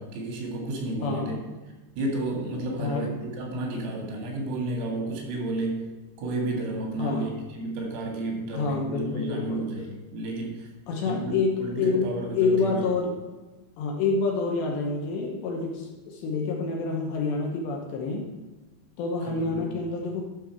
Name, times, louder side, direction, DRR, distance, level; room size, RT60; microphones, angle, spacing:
voice 1, 0.0-1.4 2.0-5.9 6.2-10.7 11.0-11.3 11.6-12.8 19.3-19.6, right 2 dB, 80° right, 0 dB, 4.7 m, -32 dB
voice 2, 1.0-1.5 2.8-3.2 7.0-7.3 8.5-9.7 10.9-13.2 13.8-18.3 19.0-20.2, left 4 dB, 70° left, 0 dB, 2.9 m, -27 dB
11.5 x 6.2 x 4.5 m, 1.2 s
omnidirectional pair, 5.8 m